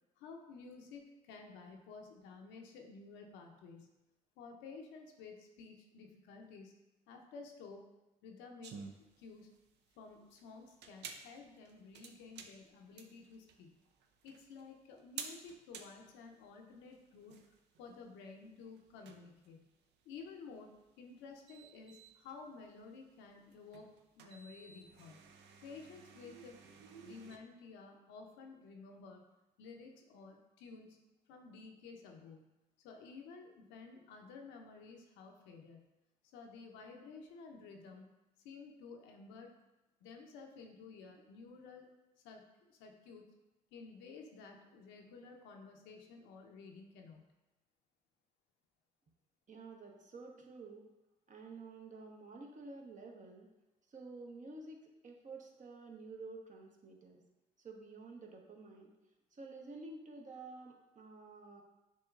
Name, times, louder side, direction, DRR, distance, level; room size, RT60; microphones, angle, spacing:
voice 1, 0.2-4.0 4.4-6.7 7.1-7.8 8.2-8.7 9.2-9.5 10.0-13.7 14.2-17.4 17.8-19.7 20.1-20.7 21.0-23.9 24.2-25.2 25.6-26.6 27.0-29.2 29.6-32.5 32.8-35.9 36.3-38.1 38.4-39.5 40.0-41.9 42.2-42.4 42.7-43.3 43.7-47.3, left 4 dB, 75° left, 2 dB, 0.6 m, -53 dB
sound 1, 8.6-27.4, right 6 dB, 65° right, 0.5 m, -54 dB
voice 2, 49.5-50.9 51.3-53.5 53.9-57.2 57.6-58.9 59.3-61.6, right 3 dB, 40° right, 2 dB, 0.9 m, -51 dB
6.0 x 3.0 x 2.4 m, 1.0 s
hypercardioid pair, 55°, 19 cm